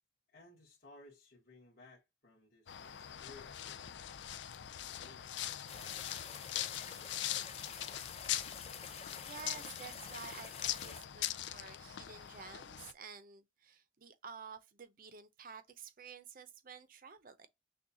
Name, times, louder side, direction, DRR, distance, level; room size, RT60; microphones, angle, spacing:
voice 1, 0.3-4.0 5.0-6.7, left 2 dB, 50° left, 1.6 m, -60 dB
sound 1, 2.7-12.9, left 12 dB, 70° left, 0.4 m, -42 dB
sound 2, 5.7-11.0, left 6 dB, 35° left, 0.6 m, -48 dB
voice 2, 8.8-17.5, right 6 dB, 50° right, 0.6 m, -51 dB
6.2 x 2.3 x 2.8 m
head